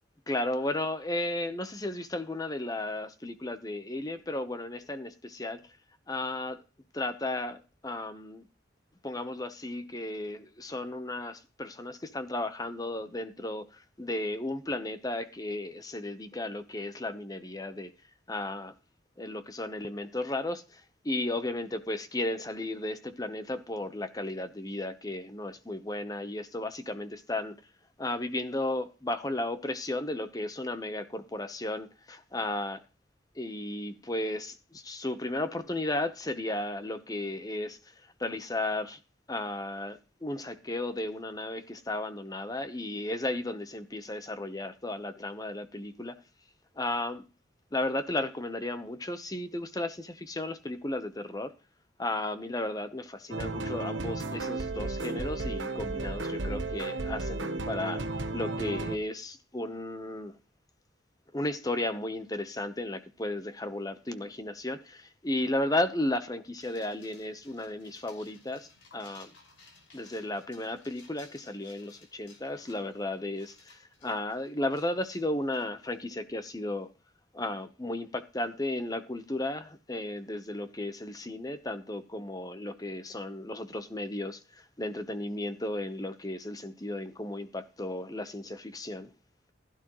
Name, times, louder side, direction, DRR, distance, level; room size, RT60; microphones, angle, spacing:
voice 1, 0.3-5.6 6.1-6.6 6.9-8.4 9.0-17.9 18.3-18.7 19.2-27.6 28.0-32.8 33.4-37.8 38.2-39.0 39.3-46.2 46.8-47.2 47.7-51.5 52.0-58.0 58.3-60.3 61.3-68.7 68.9-69.3 69.9-76.9 77.3-89.1, left 1 dB, 20° left, 0.9 m, -34 dB
sound 1, 53.3-59.0, right 2 dB, 85° right, 1.1 m, -33 dB
sound 2, 66.6-76.1, left 4 dB, 85° left, 5.5 m, -58 dB
16.0 x 11.5 x 3.1 m
head